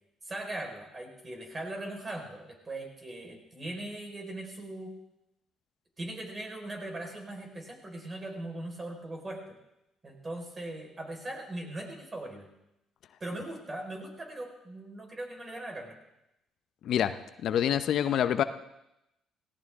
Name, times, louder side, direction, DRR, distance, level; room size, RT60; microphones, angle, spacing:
voice 1, 0.2-4.9 6.0-9.6 10.0-12.5 13.2-16.0, right 1 dB, 30° right, 2 dB, 4.5 m, -40 dB
voice 2, 17.4-18.4, left 10 dB, 65° left, 11 dB, 0.7 m, -26 dB
17.5 x 16.5 x 3.6 m, 0.87 s
supercardioid pair, 75°, 0 cm